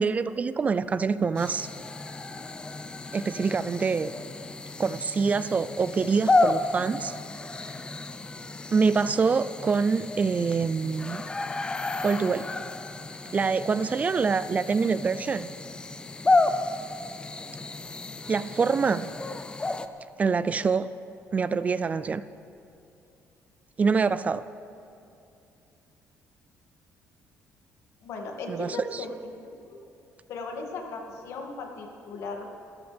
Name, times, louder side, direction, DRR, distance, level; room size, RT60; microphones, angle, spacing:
voice 1, 0.0-1.7 3.1-4.1 4.8-7.1 8.7-11.2 12.0-12.5 13.3-15.5 18.3-19.1 20.2-20.9 21.3-22.2 23.8-24.4 28.5-29.0, right 5 dB, 30° right, 15 dB, 0.4 m, -25 dB
sound 1, 1.4-19.9, left 2 dB, 15° left, 0.7 m, -31 dB
voice 2, 28.0-29.8 30.3-32.5, left 3 dB, 75° left, 1 dB, 2.3 m, -37 dB
27.5 x 14.0 x 3.5 m, 2.7 s
cardioid pair, 135°, 5 cm